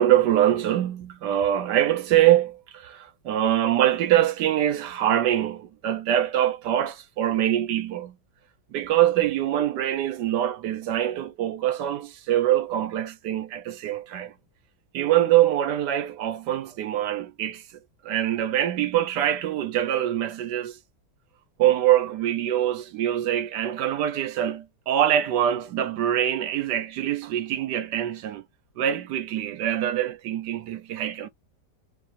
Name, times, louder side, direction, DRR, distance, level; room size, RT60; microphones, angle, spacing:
voice 1, 0.0-8.1 8.7-14.3 14.9-17.6 18.0-20.8 21.6-28.4 28.8-31.3, right 12 dB, 80° right, 1.3 m, -24 dB
4.6 x 2.6 x 4.2 m
omnidirectional pair, 1.8 m